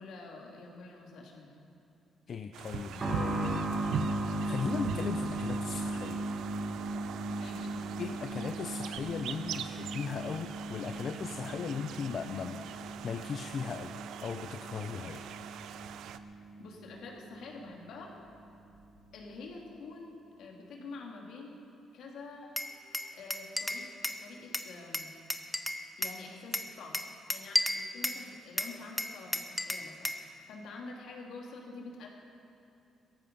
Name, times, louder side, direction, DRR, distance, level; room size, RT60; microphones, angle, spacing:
voice 1, 0.0-1.5 7.3-8.2 16.6-18.1 19.1-21.7 21.9-22.8 23.1-23.9 24.2-25.1 26.0-32.1, left 3 dB, 75° left, -1 dB, 2.8 m, -47 dB
voice 2, 2.3-4.0 4.4-6.2 8.0-13.9 14.2-15.3, left 6 dB, 55° left, 7 dB, 0.6 m, -38 dB
sound 1, 2.5-16.2, right 9 dB, 80° right, 0.6 m, -43 dB
sound 2, 3.0-17.4 17.7-17.8 18.7-18.9, right 2 dB, 35° right, 2.6 m, -37 dB
Glass, 22.6-24.2 24.5-26.2 26.5-28.2 28.6-30.2, left 1 dB, 10° left, 1.0 m, -33 dB
17.0 x 14.0 x 5.4 m, 2.7 s
cardioid pair, 90°, 0 cm